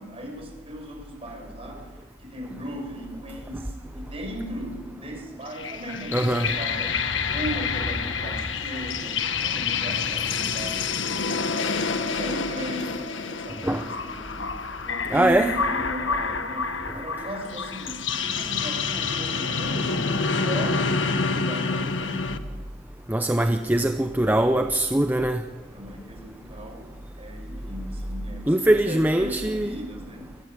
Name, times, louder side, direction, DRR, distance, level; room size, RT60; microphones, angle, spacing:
voice 1, 0.0-7.0 7.3-14.5 14.8-19.9 20.3-22.3 25.7-26.9 27.2-30.3, equal, 30° right, 6.3 m, -37 dB
sound 1, 5.5-22.4, left 5 dB, 90° left, 1.4 m, -28 dB
voice 2, 6.1-6.5 13.6-13.8 15.1-15.5 23.1-25.4 28.5-29.7, right 1 dB, 10° right, 0.7 m, -22 dB
21.0 x 15.5 x 9.7 m
head